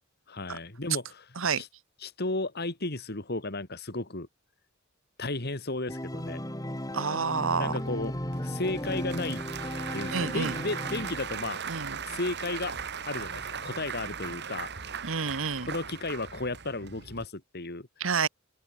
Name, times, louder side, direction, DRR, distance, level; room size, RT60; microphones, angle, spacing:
voice 1, 0.3-1.3 1.6-1.7 2.0-4.3 5.2-6.4 7.6-8.1 8.4-9.4 9.9-11.6 12.0-12.7 13.1-14.7 15.6-17.9, left 2 dB, 50° left, 2.6 m, -34 dB
Organ, 5.9-11.6, equal, 15° left, 4.8 m, -36 dB
voice 2, 6.9-7.8 10.1-10.6 11.7-12.0 15.0-15.7 18.0-18.3, right 5 dB, 70° right, 1.3 m, -29 dB
Applause / Crowd, 7.7-17.2, right 6 dB, 55° right, 2.5 m, -38 dB
open air
head